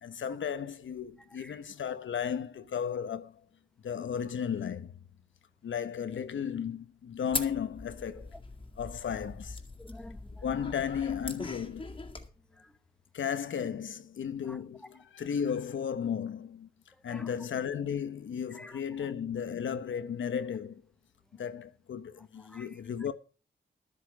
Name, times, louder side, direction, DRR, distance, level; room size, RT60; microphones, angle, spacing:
voice 1, 0.0-3.4 3.8-4.9 5.6-8.3 8.8-9.6 10.4-12.0 13.1-16.7 17.0-20.8 21.3-23.1, left 7 dB, 80° left, 1.1 m, -34 dB
sound 1, 7.3-12.3, left 2 dB, 25° left, 2.1 m, -41 dB
voice 2, 9.8-10.4 12.6-12.7 14.5-14.6 17.1-17.3 18.5-18.8 22.5-22.7, left 1 dB, 5° left, 1.1 m, -49 dB
12.5 x 8.5 x 6.1 m
wide cardioid pair, 100°, 20 cm